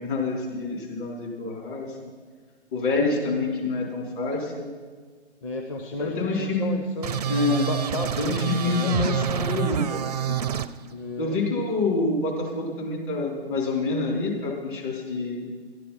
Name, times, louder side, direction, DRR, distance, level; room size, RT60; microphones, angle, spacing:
voice 1, 0.0-2.1 2.7-4.7 6.0-6.8 7.2-7.7 8.2-10.5 11.2-15.5, left 3 dB, 45° left, -1 dB, 4.2 m, -27 dB
voice 2, 5.4-7.2 7.4-8.9 10.9-11.5, left 3 dB, 30° left, 2 dB, 0.9 m, -33 dB
sound 1, 7.0-10.7, right 9 dB, 35° right, 0.4 m, -27 dB
12.0 x 12.0 x 5.9 m, 1.5 s
hypercardioid pair, 145°, 34 cm